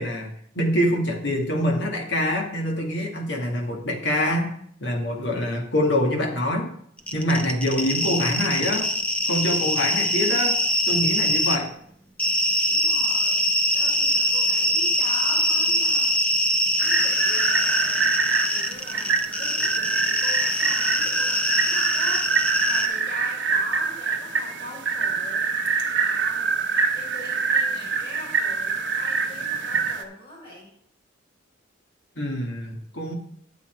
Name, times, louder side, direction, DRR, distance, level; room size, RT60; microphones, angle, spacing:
voice 1, 0.0-4.5 4.8-6.7 7.1-8.9 9.3-10.6 10.9-11.7 32.2-33.1, equal, 60° left, 1 dB, 2.0 m, -25 dB
sound 1, 7.0-11.6 12.2-22.9, equal, 5° left, 0.6 m, -23 dB
voice 2, 12.7-16.4 16.8-18.1 18.5-25.5 25.9-26.5 26.9-30.7, left 1 dB, 25° left, -5 dB, 4.7 m, -42 dB
sound 2, 16.8-30.0, right 5 dB, 70° right, 1.2 m, -25 dB
10.0 x 7.0 x 4.5 m, 0.65 s
head